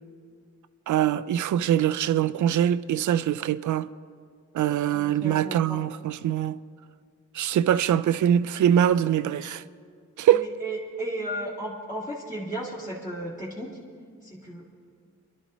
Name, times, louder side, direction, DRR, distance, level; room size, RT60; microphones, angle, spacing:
voice 1, 0.9-3.9 4.5-6.6 7.3-9.6 10.2-10.5, right 10 dB, 70° right, 0.4 m, -23 dB
voice 2, 4.9-5.8 10.3-13.8 14.2-14.7, right 1 dB, 25° left, 2.2 m, -34 dB
24.5 x 11.5 x 3.1 m
wide cardioid pair, 105°, 31 cm